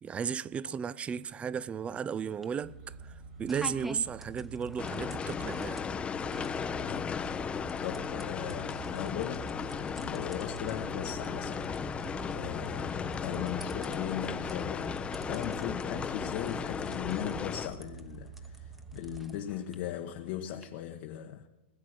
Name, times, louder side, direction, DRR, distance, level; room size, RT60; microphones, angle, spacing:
voice 1, 0.0-5.8, right 7 dB, 20° right, 0.4 m, -35 dB
sound 1, 1.1-20.6, equal, 5° right, 1.0 m, -52 dB
sound 2, 2.6-19.3, right 5 dB, 60° right, 5.7 m, -47 dB
sound 3, 4.8-17.7, left 6 dB, 20° left, 0.7 m, -36 dB
voice 2, 6.8-7.2 7.8-11.8 12.3-14.9 15.2-21.5, left 11 dB, 55° left, 1.0 m, -38 dB
20.0 x 7.3 x 6.4 m
hypercardioid pair, 120°, 6 cm